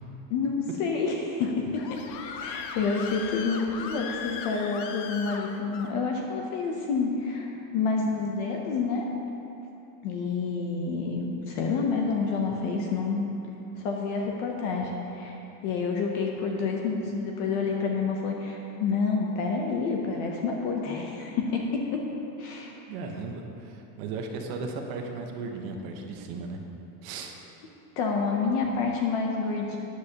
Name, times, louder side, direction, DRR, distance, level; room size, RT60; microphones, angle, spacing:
voice 1, 0.3-2.0 2.3-9.1 10.0-13.3 13.8-15.4 15.6-22.0 22.4-22.7 28.0-29.8, left 4 dB, 30° left, 1 dB, 0.5 m, -28 dB
Screaming, 1.4-5.9, left 6 dB, 80° left, 1.0 m, -38 dB
voice 2, 22.9-26.6 27.0-27.3, right 4 dB, 40° right, 3 dB, 0.9 m, -36 dB
13.5 x 9.7 x 2.8 m, 2.9 s
supercardioid pair, 170°, 49 cm